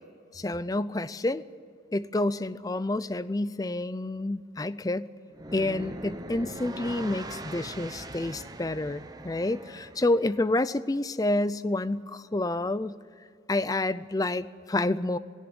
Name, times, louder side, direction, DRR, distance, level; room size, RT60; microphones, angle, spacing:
voice 1, 0.3-1.4 1.9-5.1 5.5-13.0 13.5-15.2, left 2 dB, 20° left, 16 dB, 0.5 m, -29 dB
sound 1, 5.3-10.4, right 1 dB, 20° right, 1.0 m, -41 dB
18.5 x 16.5 x 9.7 m, 2.3 s
head